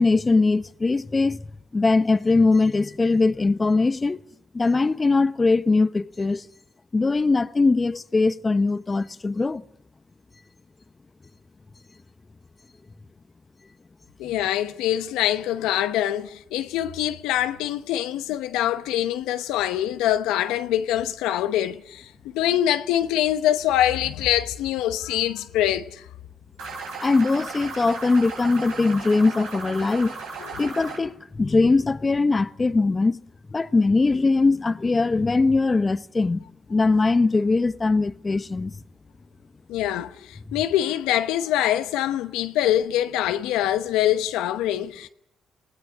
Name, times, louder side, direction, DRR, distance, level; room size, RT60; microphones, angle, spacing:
voice 1, 0.0-1.5 1.7-4.2 4.5-6.5 6.9-9.6 27.0-30.2 30.6-33.2 33.5-38.7 40.5-40.6, left 3 dB, 30° left, 1.0 m, -21 dB
voice 2, 14.2-26.1 30.4-30.5 39.7-45.1, left 12 dB, 85° left, 0.9 m, -24 dB
sound 1, 26.6-31.0, right 4 dB, 85° right, 5.4 m, -36 dB
20.5 x 17.0 x 9.7 m
supercardioid pair, 50°, 0 cm